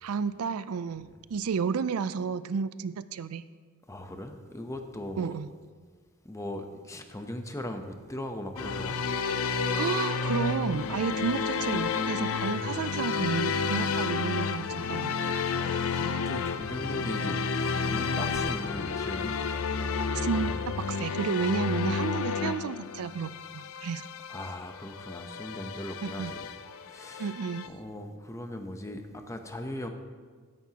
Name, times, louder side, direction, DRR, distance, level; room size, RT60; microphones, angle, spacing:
voice 1, 0.0-3.4 5.2-5.5 9.7-15.2 20.1-24.1 26.0-26.3 27.2-27.7, right 6 dB, 85° right, 15 dB, 0.4 m, -32 dB
voice 2, 3.9-5.3 6.2-9.0 15.5-19.3 20.1-20.5 24.3-26.4 26.9-27.3 27.6-29.9, left 1 dB, 15° left, 6 dB, 0.8 m, -39 dB
sound 1, 8.6-27.7, left 5 dB, 70° left, 0.5 m, -31 dB
15.5 x 10.5 x 2.9 m, 1.5 s
head